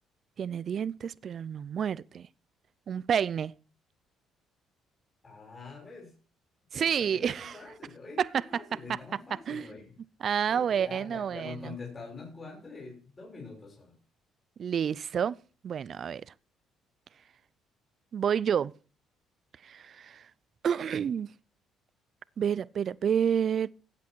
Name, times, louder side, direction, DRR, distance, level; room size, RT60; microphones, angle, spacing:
voice 1, 0.4-2.3 2.9-3.5 6.7-7.6 8.2-8.4 9.5-9.7 10.2-11.8 14.6-15.4 15.6-16.3 18.1-18.7 19.6-20.2 20.6-21.3 22.4-23.7, right 8 dB, 55° right, 0.5 m, -29 dB
voice 2, 5.2-6.1 6.7-10.0 10.5-14.0, left 4 dB, 35° left, 6.2 m, -45 dB
15.0 x 8.4 x 4.6 m
supercardioid pair, 75°, 0 cm